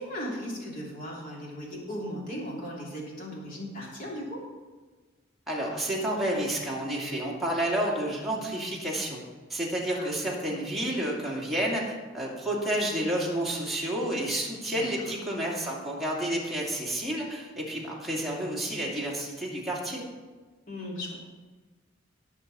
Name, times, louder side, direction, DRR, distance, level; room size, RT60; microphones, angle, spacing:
voice 1, 0.0-4.4 9.9-10.2 14.7-15.1 20.7-21.2, equal, 45° left, -3 dB, 3.0 m, -37 dB
voice 2, 5.5-9.2 9.5-20.0, right 1 dB, ahead, -5 dB, 2.4 m, -30 dB
18.0 x 6.1 x 4.2 m, 1.3 s
head